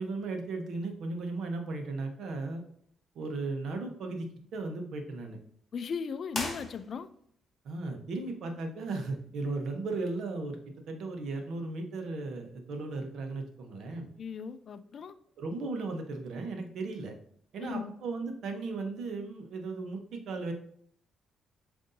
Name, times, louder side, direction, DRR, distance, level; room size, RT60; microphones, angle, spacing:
voice 1, 0.0-2.6 3.1-5.4 7.6-10.6 10.9-14.1 15.4-17.1 17.5-20.5, right 3 dB, 70° right, 4 dB, 0.9 m, -36 dB
voice 2, 5.7-7.1 14.2-15.1 17.6-17.9, left 6 dB, 50° left, 12 dB, 0.3 m, -37 dB
sound 1, 6.3-7.3, left 2 dB, 35° left, 1.1 m, -38 dB
7.4 x 2.6 x 2.7 m, 0.64 s
cardioid pair, 100°, 0 cm